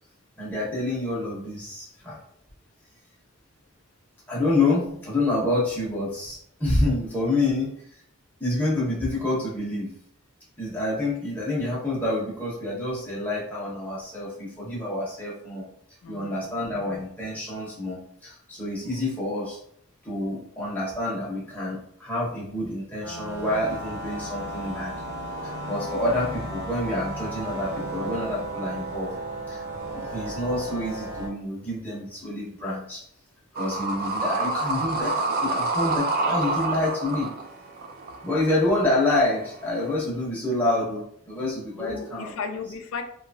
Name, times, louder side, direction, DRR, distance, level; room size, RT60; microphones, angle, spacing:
voice 1, 0.4-2.2 4.3-7.7 8.4-9.9 10.6-15.6 16.1-19.6 20.0-24.9 25.4-29.1 29.5-29.6 29.9-33.0 33.5-37.3 38.2-42.3, left 2 dB, 5° left, -7 dB, 0.7 m, -27 dB
voice 2, 16.0-16.7 41.7-43.0, left 5 dB, 65° left, 5 dB, 0.3 m, -35 dB
sound 1, 23.0-31.3, right 1 dB, 60° right, 1.1 m, -34 dB
sound 2, 33.5-39.9, right 2 dB, 40° right, 0.3 m, -28 dB
2.9 x 2.3 x 2.5 m, 0.67 s
head